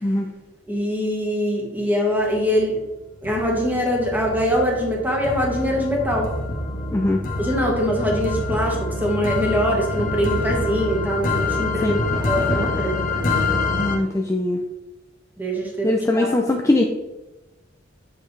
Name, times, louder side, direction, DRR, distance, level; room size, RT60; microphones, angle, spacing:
voice 1, 0.7-2.8 3.2-6.3 7.4-12.0 12.2-13.3 15.4-16.3, equal, 10° right, -1 dB, 1.5 m, -23 dB
sound 1, 2.2-2.8 3.2-14.0, left 2 dB, 45° left, 1.0 m, -26 dB
voice 2, 13.8-14.6 15.8-16.8, left 2 dB, 15° left, 1 dB, 0.4 m, -21 dB
6.7 x 5.3 x 3.3 m, 1.0 s
head